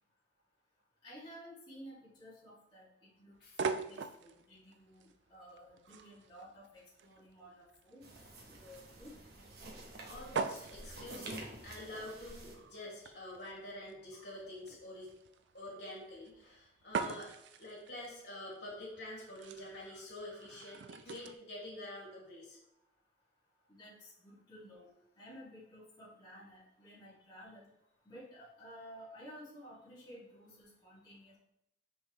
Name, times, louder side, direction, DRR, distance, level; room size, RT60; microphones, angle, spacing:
voice 1, 1.0-8.1 8.5-9.1 23.7-24.9 25.2-27.7 28.0-31.4, equal, 25° left, -10 dB, 2.4 m, -54 dB
sound 1, 3.4-21.3, right 5 dB, 90° right, 0.4 m, -44 dB
sound 2, 8.0-12.5, right 2 dB, 60° right, 1.1 m, -49 dB
voice 2, 10.1-15.1 15.5-17.3 17.6-22.6, left 1 dB, 75° left, -5 dB, 2.4 m, -47 dB
5.6 x 5.3 x 3.2 m, 0.79 s
head